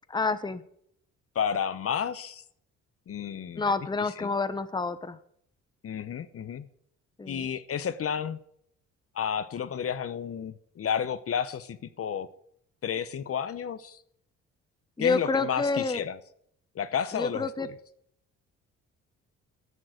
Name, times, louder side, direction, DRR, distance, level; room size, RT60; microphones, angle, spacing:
voice 1, 0.1-0.6 3.6-5.2 7.2-7.5 15.0-16.0 17.1-17.7, left 4 dB, 15° left, 13 dB, 0.9 m, -29 dB
voice 2, 1.3-2.4 3.1-3.7 4.2-4.3 5.8-6.7 7.3-8.4 9.1-12.3 12.8-14.0 15.0-16.2 16.7-17.7, left 8 dB, 50° left, 13 dB, 0.9 m, -31 dB
11.0 x 7.4 x 7.8 m, 0.68 s
cardioid pair, 90°, 30 cm